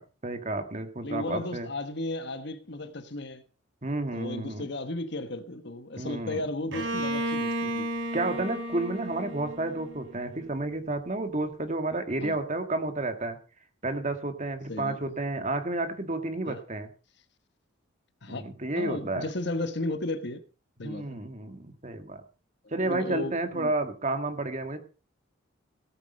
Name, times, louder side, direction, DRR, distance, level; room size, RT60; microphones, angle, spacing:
voice 1, 0.2-1.7 3.8-4.7 6.0-6.4 8.1-13.4 13.8-16.9 18.3-19.3 20.8-22.2 22.7-24.8, right 2 dB, 35° right, 1.9 m, -31 dB
voice 2, 1.0-3.4 4.1-7.9 12.2-12.4 14.7-15.0 16.4-16.6 18.2-18.4 18.8-20.4 20.8-21.2 22.8-23.7, left 2 dB, 55° left, 1.3 m, -34 dB
Bowed string instrument, 6.7-10.5, right 1 dB, 65° right, 3.7 m, -33 dB
17.5 x 8.7 x 5.4 m
head